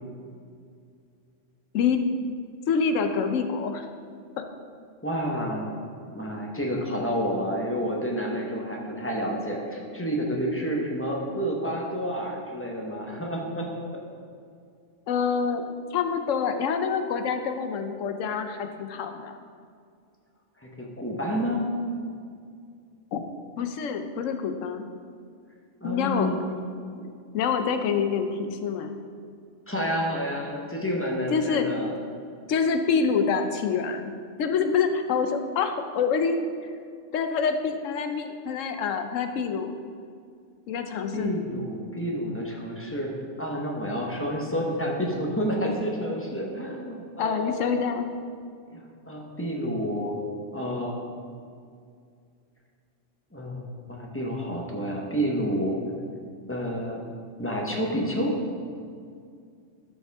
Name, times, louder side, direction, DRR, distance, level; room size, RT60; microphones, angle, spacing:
voice 1, 2.7-3.9 4.4-4.5 15.1-19.4 23.1-23.2 23.6-24.9 25.8-26.3 27.0-29.0 31.3-31.7 32.5-34.1 34.4-36.4 37.1-39.7 40.7-41.3 47.2-48.1, left 6 dB, 85° left, 7 dB, 1.0 m, -26 dB
voice 2, 5.0-5.6 6.1-13.7 20.6-21.6 25.8-26.4 29.7-31.9 41.1-47.7 48.7-50.1 50.5-51.0 53.3-55.8 56.5-57.0 57.4-58.3, equal, 10° left, -1 dB, 1.0 m, -29 dB
12.5 x 5.4 x 3.5 m, 2.2 s
omnidirectional pair, 1.3 m